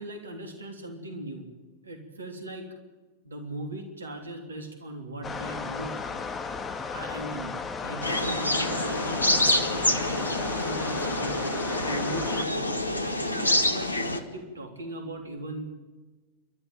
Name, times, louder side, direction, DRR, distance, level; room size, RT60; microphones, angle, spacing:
voice 1, 0.0-1.5 1.8-2.7 3.2-6.0 6.9-11.4 11.8-15.7, right 1 dB, 75° right, 5 dB, 3.3 m, -39 dB
sound 1, 5.2-12.4, left 5 dB, 25° left, 2.2 m, -35 dB
sound 2, 8.0-14.2, left 1 dB, 80° left, 1.5 m, -27 dB
28.0 x 12.5 x 9.1 m, 1.3 s
figure-of-eight pair, 90°, 0 cm